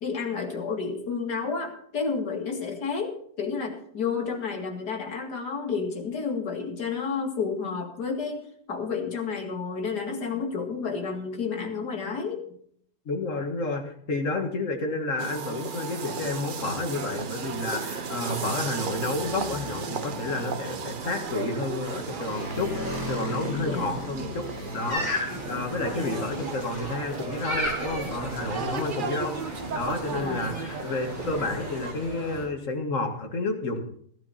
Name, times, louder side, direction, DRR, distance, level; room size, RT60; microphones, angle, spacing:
voice 1, 0.0-12.4 23.6-24.0 25.9-26.1 30.1-30.4, left 5 dB, 70° left, 2 dB, 2.7 m, -31 dB
voice 2, 13.1-25.1 25.5-29.4 29.7-33.9, left 2 dB, 50° left, 3 dB, 2.1 m, -30 dB
sound 1, 15.2-31.9, right 5 dB, 50° right, 0.6 m, -35 dB
Motorcycle, 16.5-26.9, left 1 dB, 80° right, 7.3 m, -40 dB
sound 2, 24.9-32.4, equal, 25° left, 7.5 m, -35 dB
15.5 x 11.0 x 4.2 m, 0.63 s
omnidirectional pair, 1.8 m